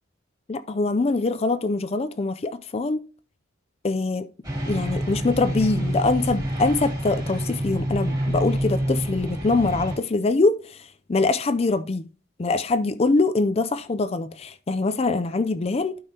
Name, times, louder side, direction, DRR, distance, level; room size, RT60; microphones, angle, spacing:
voice 1, 0.5-3.0 3.8-4.3 4.7-12.0 12.4-16.0, left 3 dB, 30° left, 0.4 m, -23 dB
sound 1, 4.4-10.0, right 1 dB, 20° right, 3.3 m, -27 dB
12.0 x 5.5 x 2.8 m
head